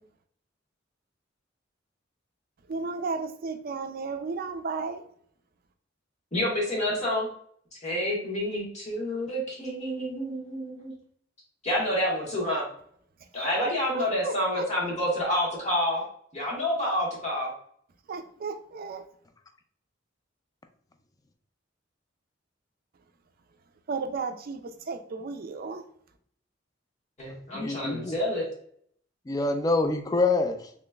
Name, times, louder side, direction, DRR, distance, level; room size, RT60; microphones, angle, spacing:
voice 1, 2.7-5.0 13.6-14.6 18.1-19.0 23.9-25.8, right 4 dB, 50° right, 8 dB, 0.4 m, -34 dB
voice 2, 6.3-7.3 7.8-10.9 11.6-12.7 13.3-16.0 16.3-17.5 27.2-28.5, left 1 dB, 35° left, -4 dB, 1.5 m, -28 dB
voice 3, 27.5-28.2 29.3-30.7, left 3 dB, 20° left, 6 dB, 0.3 m, -26 dB
4.0 x 3.0 x 2.3 m, 0.64 s
head